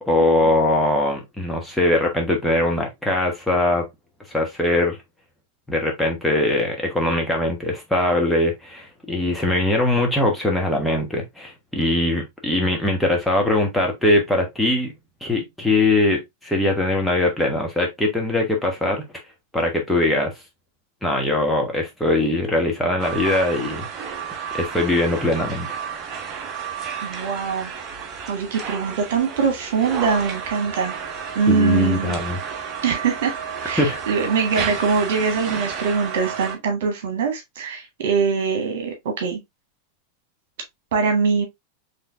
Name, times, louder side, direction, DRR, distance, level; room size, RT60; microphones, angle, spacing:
voice 1, 0.1-3.9 4.3-5.0 5.7-14.9 15.2-19.0 19.5-20.3 21.0-23.9 24.5-25.7 31.5-32.4 33.8-34.0, left 1 dB, ahead, 1.2 m, -21 dB
sound 1, 23.0-36.6, right 7 dB, 30° right, 1.1 m, -32 dB
voice 2, 27.0-27.7 28.3-31.0 31.3-32.1 32.8-33.3 33.6-39.4 40.9-41.5, right 5 dB, 55° right, 1.6 m, -22 dB
5.5 x 3.4 x 2.5 m
figure-of-eight pair, 90°, 0 cm